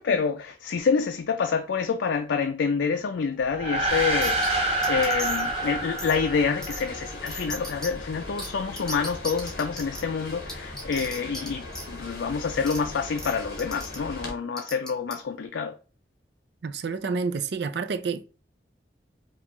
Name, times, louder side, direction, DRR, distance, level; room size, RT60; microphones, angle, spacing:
voice 1, 0.0-15.7, left 5 dB, 90° left, 0.4 m, -27 dB
sound 1, 3.5-7.2, right 2 dB, 35° right, 1.1 m, -27 dB
sound 2, 3.9-14.3, left 2 dB, 55° left, 1.4 m, -39 dB
sound 3, 4.2-4.5 4.8-5.5 6.0-6.2 6.6-6.8 7.3-7.9 8.4-8.5 8.7-10.0 10.5-11.5 11.7-11.8 12.7-12.8 13.2-13.3 13.6-14.0 14.6-15.1, equal, 5° left, 0.9 m, -36 dB
voice 2, 16.6-18.2, right 5 dB, 70° right, 0.4 m, -29 dB
5.3 x 2.4 x 3.0 m
head